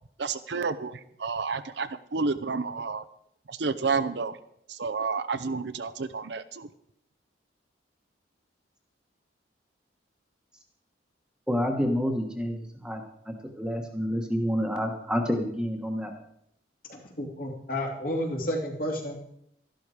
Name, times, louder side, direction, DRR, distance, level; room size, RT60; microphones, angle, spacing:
voice 1, 0.2-3.0 3.5-4.4 4.7-6.7, right 4 dB, 65° right, 12 dB, 0.7 m, -30 dB
voice 2, 11.5-16.1, equal, 5° right, 3 dB, 1.3 m, -29 dB
voice 3, 16.9-19.1, equal, 50° left, 0 dB, 2.8 m, -31 dB
13.0 x 11.5 x 4.9 m, 0.74 s
head